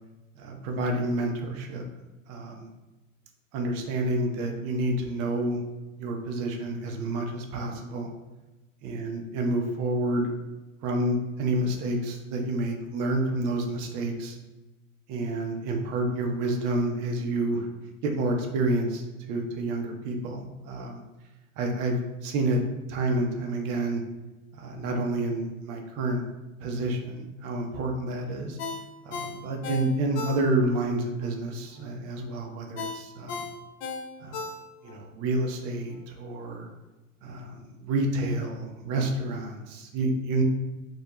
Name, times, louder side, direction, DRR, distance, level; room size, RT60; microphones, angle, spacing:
voice 1, 0.4-1.8 2.3-2.7 3.5-5.6 6.0-8.1 8.8-10.3 10.8-14.4 15.1-17.7 18.0-21.0 21.6-22.6 22.9-24.0 24.5-26.2 26.6-28.6 29.0-33.4 34.2-34.4 34.8-36.7 37.2-40.4, right 2 dB, 40° right, 2 dB, 0.5 m, -29 dB
Ringtone, 28.6-30.8 31.2-31.3 32.8-35.0 35.4-35.5, left 4 dB, 55° left, 0.5 m, -36 dB
2.3 x 2.1 x 2.8 m, 1.1 s
hypercardioid pair, 90°, 41 cm